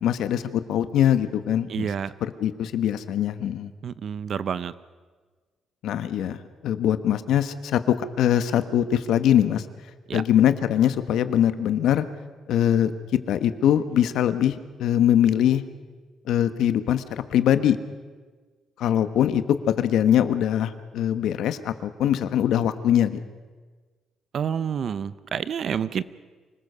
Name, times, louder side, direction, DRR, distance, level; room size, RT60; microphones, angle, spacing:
voice 1, 0.0-1.9 2.2-3.7 5.8-6.4 6.6-9.6 10.1-12.0 12.5-12.9 13.3-15.6 16.3-17.8 18.8-23.2, left 10 dB, 70° left, 11 dB, 1.2 m, -22 dB
voice 2, 1.7-2.1 3.8-4.7 10.1-10.2 24.3-26.0, right 7 dB, 45° right, 16 dB, 0.7 m, -28 dB
26.0 x 19.5 x 6.8 m, 1.4 s
cardioid pair, 170°, 0 cm